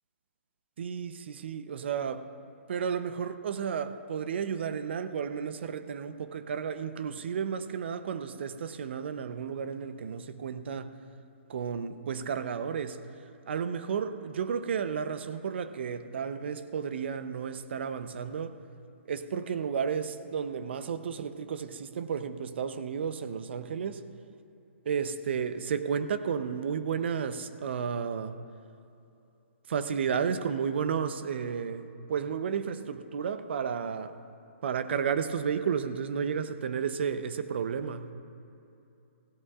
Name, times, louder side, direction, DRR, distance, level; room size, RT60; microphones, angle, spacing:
voice 1, 0.8-2.3 2.7-11.0 11.5-13.0 13.5-18.6 19.1-24.0 24.8-28.4 29.7-34.2 34.6-38.1, right 7 dB, 60° right, 11 dB, 0.7 m, -32 dB
16.5 x 16.5 x 2.4 m, 2.8 s
hypercardioid pair, 145°, 7 cm